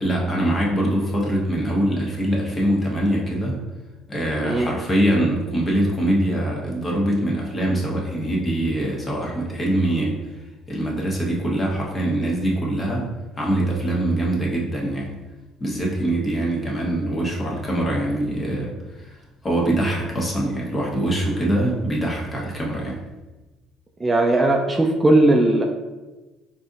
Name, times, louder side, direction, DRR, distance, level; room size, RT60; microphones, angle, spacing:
voice 1, 0.0-3.6 4.1-10.2 10.7-15.2 15.6-19.2 19.4-23.0, right 1 dB, 30° left, -2 dB, 1.0 m, -23 dB
voice 2, 24.0-25.6, right 2 dB, 20° right, 1 dB, 0.4 m, -18 dB
4.0 x 2.7 x 2.5 m, 1.2 s
supercardioid pair, 80°, 0 cm